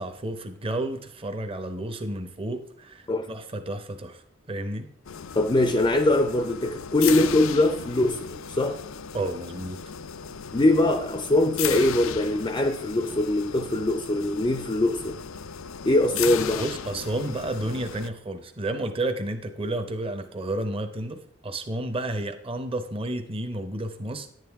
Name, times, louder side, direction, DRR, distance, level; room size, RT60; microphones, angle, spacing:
voice 1, 0.0-4.2 4.5-4.9 9.1-9.8 16.6-24.3, right 1 dB, 30° right, 0.8 m, -31 dB
sound 1, 5.0-18.1, left 8 dB, 80° left, 0.5 m, -36 dB
voice 2, 5.4-8.8 10.5-15.2 15.9-16.7, left 2 dB, 20° left, 0.5 m, -22 dB
10.5 x 9.1 x 3.5 m
head